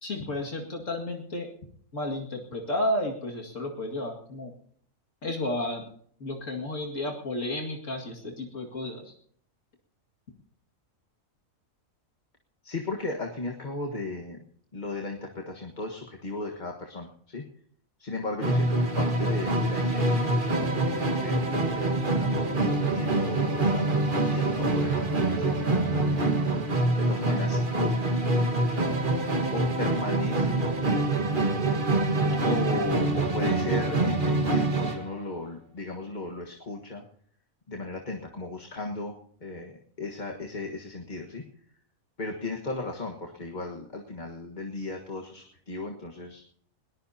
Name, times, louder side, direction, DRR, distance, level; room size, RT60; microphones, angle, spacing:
voice 1, 0.0-1.5 1.9-4.5 5.2-5.8 6.2-9.1 32.3-32.6, left 1 dB, 65° left, 0 dB, 2.5 m, -32 dB
voice 2, 12.6-14.4 14.7-17.4 18.0-23.9 24.2-26.6 27.0-27.9 29.5-30.6 32.5-37.0 37.7-39.1 39.4-39.7 40.0-41.4 42.2-46.4, left 2 dB, 35° left, 1 dB, 1.6 m, -36 dB
Musical instrument, 18.4-35.1, right 2 dB, 40° right, 1.7 m, -25 dB
21.0 x 19.5 x 2.8 m, 0.62 s
omnidirectional pair, 1.4 m